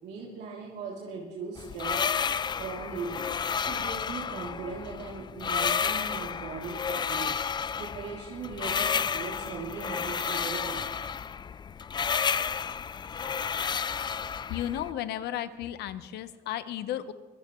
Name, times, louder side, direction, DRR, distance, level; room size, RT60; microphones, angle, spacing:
voice 1, 0.0-2.1 2.6-3.3 3.6-7.3 7.8-10.9, right 4 dB, 80° right, -4 dB, 3.0 m, -39 dB
sound 1, 1.6-14.9, left 6 dB, 25° left, 0.4 m, -31 dB
voice 2, 14.5-17.1, left 11 dB, 80° left, 12 dB, 1.0 m, -34 dB
24.0 x 17.0 x 3.1 m, 1.3 s
cardioid pair, 110°, 17 cm